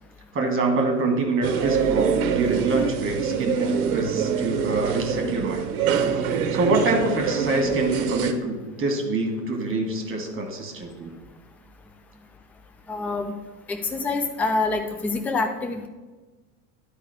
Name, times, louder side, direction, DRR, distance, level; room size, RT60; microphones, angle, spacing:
voice 1, 0.3-5.6 6.0-11.1, right 3 dB, 25° right, 3 dB, 1.8 m, -25 dB
sound 1, 1.4-8.3, right 7 dB, 60° right, 0.8 m, -25 dB
voice 2, 12.9-13.3 13.7-15.9, left 3 dB, 5° left, 5 dB, 0.4 m, -26 dB
11.5 x 4.9 x 3.5 m, 1.2 s
figure-of-eight pair, 75°, 48 cm